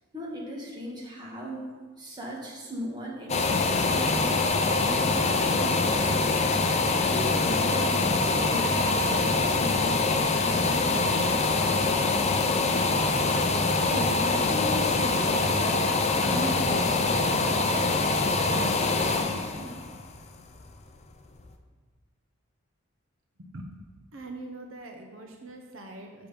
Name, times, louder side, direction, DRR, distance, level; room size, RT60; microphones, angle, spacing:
voice 1, 0.1-6.7 7.1-12.2 13.9-15.8 16.2-19.8, equal, 20° right, -3 dB, 1.7 m, -38 dB
sound 1, 3.3-21.0 21.4-21.5, left 3 dB, 35° left, 0.6 m, -24 dB
voice 2, 24.1-26.3, right 2 dB, 80° right, 3 dB, 0.8 m, -42 dB
7.0 x 5.9 x 5.1 m, 1.5 s
head